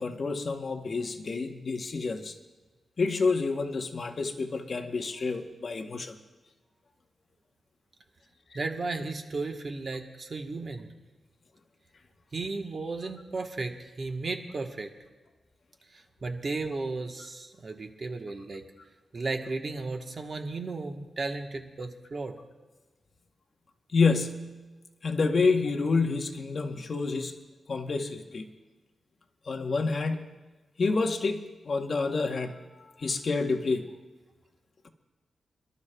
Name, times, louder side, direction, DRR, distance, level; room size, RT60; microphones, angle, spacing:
voice 1, 0.0-2.3 3.0-6.2 23.9-24.6 25.0-27.3 27.7-28.5 29.5-30.3 30.8-33.9, left 4 dB, 45° left, 5 dB, 0.9 m, -28 dB
voice 2, 8.5-10.9 12.3-14.9 15.9-18.6 19.1-22.4, right 3 dB, 40° right, 4 dB, 1.1 m, -34 dB
27.5 x 12.0 x 2.2 m, 1.2 s
wide cardioid pair, 140°, 0 cm